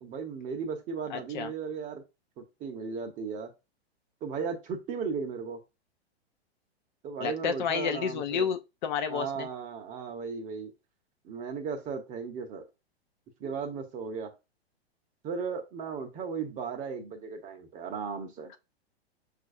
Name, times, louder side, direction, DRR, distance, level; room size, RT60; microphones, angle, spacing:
voice 1, 0.0-2.0 2.4-3.5 4.2-5.6 7.0-8.5 9.1-10.7 11.2-12.6 13.4-14.3 15.2-18.5, right 5 dB, 25° right, 0.8 m, -36 dB
voice 2, 1.1-1.5 7.2-9.5, left 7 dB, 45° left, 0.6 m, -31 dB
5.9 x 2.5 x 2.5 m
figure-of-eight pair, 105°, 32 cm